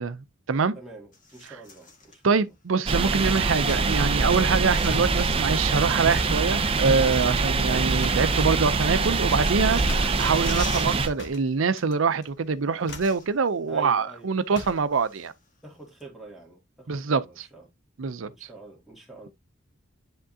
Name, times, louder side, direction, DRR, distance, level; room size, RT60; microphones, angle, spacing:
voice 1, 0.0-0.7 2.2-15.3 16.9-17.4 18.0-18.5, right 5 dB, 75° right, 0.6 m, -25 dB
voice 2, 0.7-2.4 7.2-7.9 13.7-14.3 15.6-17.7 18.3-19.3, right 2 dB, ahead, 2.3 m, -45 dB
sound 1, 1.1-2.2 3.0-4.0 4.3-5.6 6.4-6.5 6.8-8.0 8.3-11.3 11.5-11.8 12.5-12.6 12.8-13.6 13.9-14.0 14.5-15.5 16.0-16.1, left 4 dB, 40° left, 1.6 m, -45 dB
sound 2, 2.9-11.1, right 3 dB, 30° right, 0.6 m, -24 dB
sound 3, 3.7-5.2 6.1-6.5 8.0-8.4 9.9-10.2 11.2-12.0 12.2-12.5 12.8-13.2 14.5-14.9, left 3 dB, 60° left, 1.2 m, -41 dB
10.0 x 3.6 x 2.7 m
head